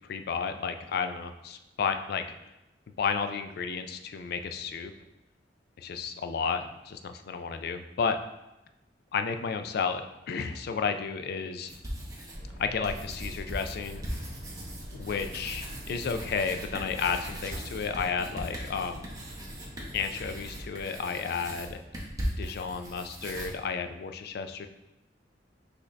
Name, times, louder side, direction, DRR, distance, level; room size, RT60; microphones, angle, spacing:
voice 1, 0.1-2.2 3.0-4.9 5.8-8.2 9.1-11.7 12.6-14.0 14.9-19.1 19.9-21.8 22.4-24.7, left 6 dB, 60° left, 8 dB, 0.3 m, -32 dB
sound 1, 11.7-12.5 12.8-23.5, equal, 20° right, 0.9 m, -39 dB
sound 2, 12.3-20.6, equal, 50° right, 1.5 m, -45 dB
6.1 x 2.6 x 3.2 m, 0.97 s
head